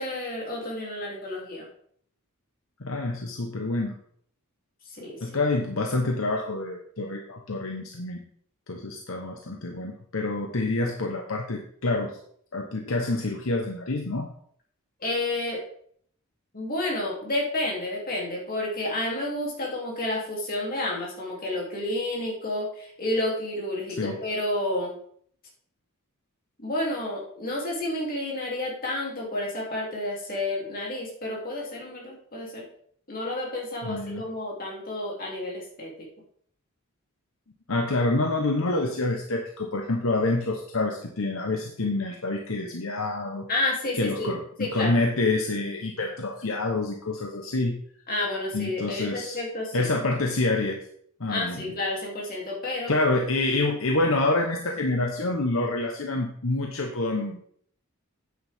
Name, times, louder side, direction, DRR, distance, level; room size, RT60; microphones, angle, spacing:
voice 1, 0.0-1.7 4.9-5.3 15.0-15.6 16.5-24.9 26.6-32.7 33.1-35.9 43.5-44.3 44.6-45.0 48.1-49.9 51.3-52.9, left 1 dB, 40° left, -3 dB, 2.9 m, -30 dB
voice 2, 2.8-4.0 5.2-8.2 8.7-12.2 12.5-14.3 24.0-24.2 33.8-34.2 37.7-43.5 43.9-44.4 44.7-47.8 48.5-49.4 49.7-50.8 51.2-51.7 52.9-57.4, left 2 dB, 70° left, 2 dB, 1.0 m, -27 dB
9.3 x 8.9 x 3.6 m, 0.63 s
head